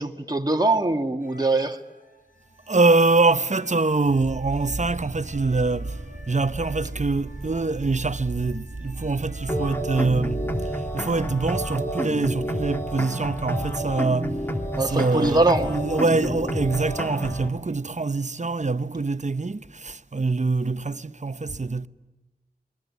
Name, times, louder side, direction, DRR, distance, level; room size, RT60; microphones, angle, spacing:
voice 1, 0.0-1.8 14.7-15.8, right 2 dB, 25° right, 1.7 m, -22 dB
sound 1, 1.2-10.7, right 1 dB, 55° left, 6.5 m, -51 dB
voice 2, 2.7-6.0 6.3-10.5 10.9-14.4 14.8-21.9, right 3 dB, 45° right, 0.9 m, -24 dB
sound 2, 4.0-11.6, right 2 dB, 90° right, 1.7 m, -36 dB
sound 3, 9.5-17.5, equal, 10° left, 2.7 m, -29 dB
27.5 x 21.5 x 9.5 m
wide cardioid pair, 55°, 17 cm